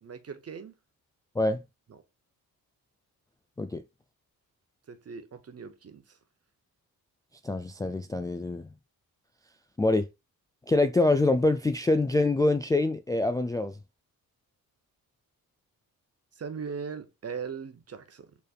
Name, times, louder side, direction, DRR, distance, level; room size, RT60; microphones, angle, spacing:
voice 1, 0.0-0.7 1.9-2.0 4.9-6.2 16.4-18.4, right 6 dB, 40° right, 0.8 m, -39 dB
voice 2, 7.4-8.7 9.8-10.1 10.7-13.7, left 2 dB, 10° left, 0.3 m, -25 dB
4.5 x 3.2 x 2.4 m
cardioid pair, 65°, 36 cm